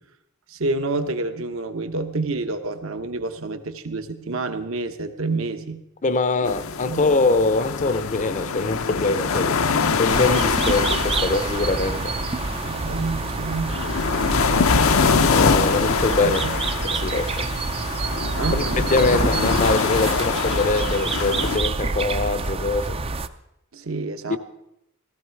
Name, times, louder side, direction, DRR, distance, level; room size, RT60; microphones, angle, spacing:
voice 1, 0.5-5.8 6.4-6.5 6.8-7.1 12.6-13.9 15.0-15.2 16.2-16.6 18.4-18.7 23.7-24.4, right 3 dB, 65° right, 1.1 m, -28 dB
voice 2, 6.0-9.6 10.0-12.1 15.3-16.6 16.8-17.5 18.5-18.6 18.9-23.0 24.3-24.4, left 3 dB, 35° left, 0.6 m, -23 dB
sound 1, 6.4-21.6, left 5 dB, 70° left, 0.7 m, -24 dB
sound 2, 10.1-23.3, right 3 dB, 25° right, 0.5 m, -27 dB
15.5 x 14.5 x 4.6 m
head